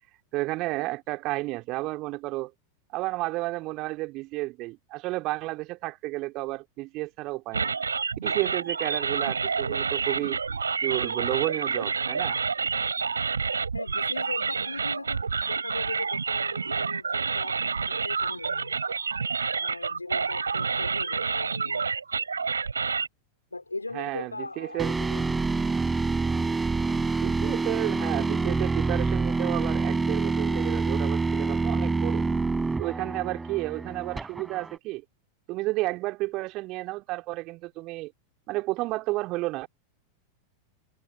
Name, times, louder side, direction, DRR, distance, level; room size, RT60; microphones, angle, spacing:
voice 1, 0.3-2.5 2.9-7.8 8.2-10.4 10.8-12.4 23.9-24.9 27.1-32.3 32.8-35.0 35.5-38.1 38.5-39.7, right 20 dB, 40° right, 3.4 m, -31 dB
sound 1, 7.5-23.1, right 5 dB, 75° right, 7.2 m, -29 dB
voice 2, 13.7-19.1 19.5-21.9 23.5-25.4, left 2 dB, 80° left, 4.2 m, -39 dB
sound 2, 24.8-34.8, right 3 dB, 10° right, 4.1 m, -27 dB
figure-of-eight pair, 90°, 0 cm